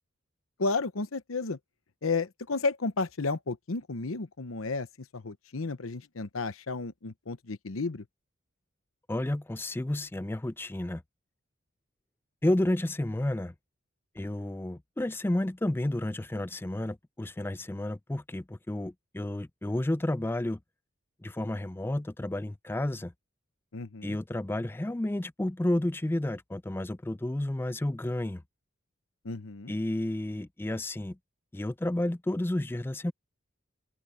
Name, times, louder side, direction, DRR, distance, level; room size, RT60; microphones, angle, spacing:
voice 1, 0.6-1.6 2.0-4.9 5.1-8.0 23.7-24.2 29.2-29.7, left 3 dB, 90° left, 0.9 m, -32 dB
voice 2, 9.1-11.0 12.4-13.5 14.2-20.6 21.2-23.1 24.0-28.4 29.7-31.2 31.5-33.1, left 1 dB, 10° left, 0.3 m, -31 dB
open air
head